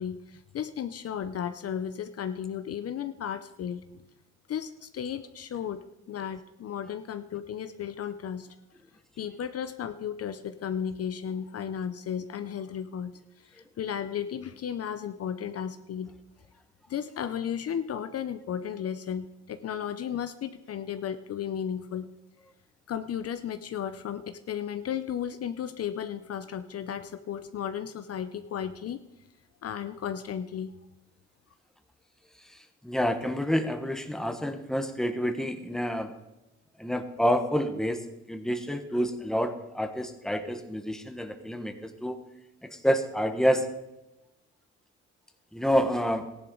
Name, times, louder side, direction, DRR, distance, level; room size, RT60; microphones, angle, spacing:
voice 1, 0.0-4.0 4.5-8.5 9.2-16.1 16.9-22.1 22.9-29.0 29.6-30.8, left 8 dB, 55° left, 10 dB, 0.7 m, -34 dB
voice 2, 32.4-36.1 36.8-42.2 42.6-43.7 45.5-46.3, equal, ahead, 7 dB, 1.2 m, -28 dB
15.0 x 11.0 x 3.8 m, 0.96 s
cardioid pair, 90°, 30 cm